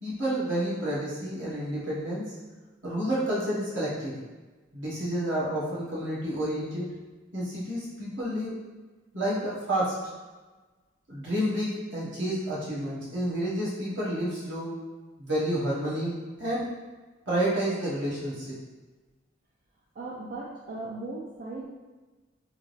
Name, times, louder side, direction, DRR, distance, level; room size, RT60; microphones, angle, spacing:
voice 1, 0.0-2.3 2.8-4.2 4.7-7.0 7.3-8.6 9.1-10.1 11.1-14.8 15.2-16.8 17.3-18.5, right 1 dB, 65° right, -8 dB, 1.4 m, -30 dB
voice 2, 20.0-21.6, right 2 dB, 45° right, -6 dB, 0.5 m, -37 dB
3.6 x 2.6 x 3.2 m, 1.2 s
head